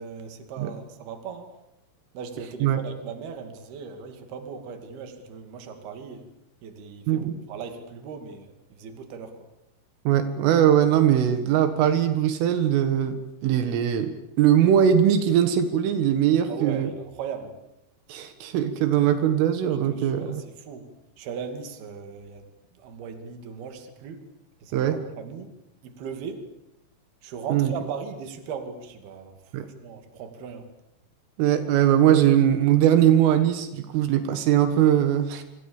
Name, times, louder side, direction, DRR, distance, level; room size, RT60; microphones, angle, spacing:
voice 1, 0.0-1.5 2.1-6.2 6.6-9.5 16.5-17.6 19.9-20.9 21.2-22.5 22.7-24.2 24.6-25.5 25.8-26.4 27.2-29.3 29.7-30.7, right 6 dB, 55° right, 6 dB, 4.2 m, -38 dB
voice 2, 7.1-7.4 10.1-16.9 18.1-20.4 24.7-25.0 27.5-27.7 29.5-29.7 31.4-35.4, right 10 dB, 80° right, 9 dB, 4.1 m, -21 dB
26.5 x 26.0 x 7.2 m, 0.89 s
omnidirectional pair, 5.7 m